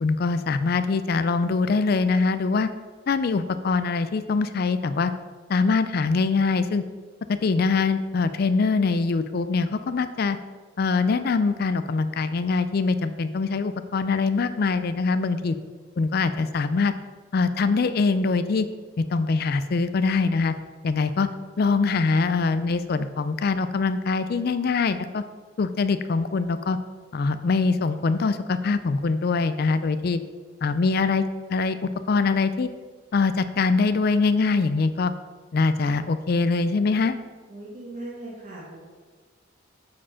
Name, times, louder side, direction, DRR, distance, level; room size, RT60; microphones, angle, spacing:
voice 1, 0.0-2.7 3.1-5.1 5.5-6.8 7.3-10.4 10.8-15.6 16.0-16.9 17.3-18.7 19.0-20.5 20.8-21.3 21.6-25.2 25.6-26.8 27.1-30.2 30.6-31.2 31.5-32.7 33.1-35.1 35.5-37.2, left 4 dB, 50° left, 12 dB, 0.4 m, -23 dB
voice 2, 37.5-38.8, right 2 dB, 40° right, -6 dB, 1.4 m, -39 dB
7.4 x 4.4 x 5.7 m, 1.4 s
head